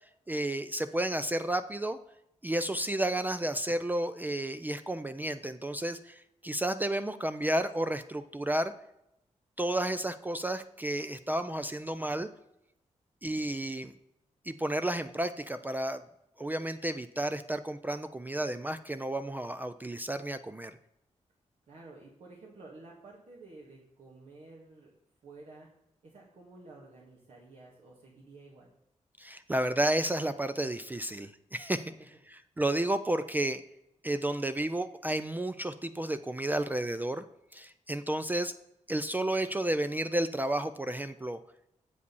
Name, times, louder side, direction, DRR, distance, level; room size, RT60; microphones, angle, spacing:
voice 1, 0.3-2.0 2.4-8.7 9.6-12.3 13.2-13.9 14.5-16.0 16.4-20.8 29.2-31.9 32.3-33.6 34.0-37.2 37.5-38.5 38.9-41.4, right 1 dB, 15° right, 11 dB, 0.3 m, -32 dB
voice 2, 21.7-24.9 25.2-25.7 26.0-28.7 31.8-32.1, right 3 dB, 70° right, -4 dB, 1.8 m, -52 dB
8.1 x 5.1 x 6.9 m, 0.83 s
wide cardioid pair, 170°, 12 cm